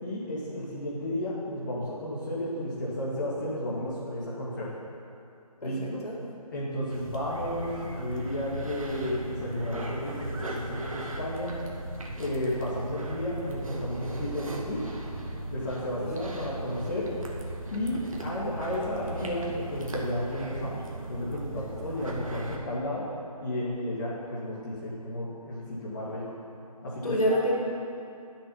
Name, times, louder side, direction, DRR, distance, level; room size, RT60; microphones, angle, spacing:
voice 1, 0.0-4.7 5.6-6.0 6.5-11.5 12.2-14.8 15.5-17.1 17.7-20.8 21.1-23.0 23.4-26.2 26.8-27.4, left 1 dB, 30° left, -8 dB, 2.5 m, -33 dB
voice 2, 5.6-6.2 16.0-16.1 27.0-27.5, equal, 70° left, -4 dB, 4.3 m, -27 dB
sound 1, 6.9-22.6, right 1 dB, 60° right, 2.2 m, -37 dB
21.5 x 7.8 x 5.6 m, 2.6 s
figure-of-eight pair, 160°, 20 cm